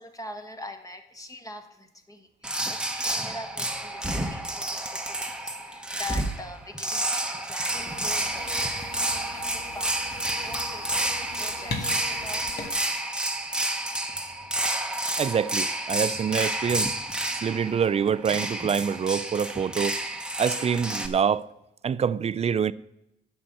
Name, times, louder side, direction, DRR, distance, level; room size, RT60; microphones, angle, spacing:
voice 1, 0.0-8.9 9.3-12.5, left 2 dB, 15° left, 1.5 m, -43 dB
sound 1, 2.4-21.1, right 1 dB, 5° right, 1.2 m, -30 dB
sound 2, 7.7-12.7, left 3 dB, 55° left, 2.1 m, -39 dB
voice 2, 15.2-17.0 17.3-20.0 20.4-21.5 21.8-22.7, right 7 dB, 30° right, 0.4 m, -26 dB
8.9 x 6.9 x 7.6 m
cardioid pair, 90°, 20 cm